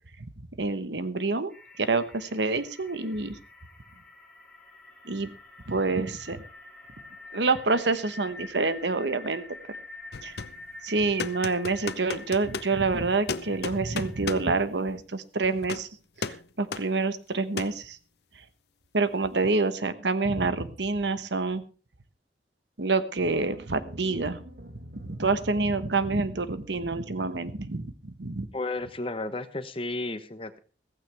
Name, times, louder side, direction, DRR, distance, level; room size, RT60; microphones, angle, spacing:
voice 1, 0.4-3.4 5.0-5.3 5.7-6.4 7.3-9.4 10.2-10.4 10.8-15.9 16.2-18.0 18.9-21.6 22.8-24.4 25.0-28.5, right 3 dB, 80° right, 12 dB, 1.2 m, -27 dB
sound 1, 1.5-14.9, left 2 dB, 5° left, 4.5 m, -47 dB
sound 2, 10.1-10.6 11.2-12.7 13.3-14.5 15.6-15.9 16.2-16.5 16.7-16.9 17.6-17.8, left 4 dB, 65° left, 0.7 m, -34 dB
sound 3, 23.2-27.4, right 1 dB, 60° right, 2.1 m, -46 dB
voice 2, 28.5-30.6, left 2 dB, 30° left, 11 dB, 1.1 m, -33 dB
15.5 x 15.0 x 3.5 m, 0.36 s
head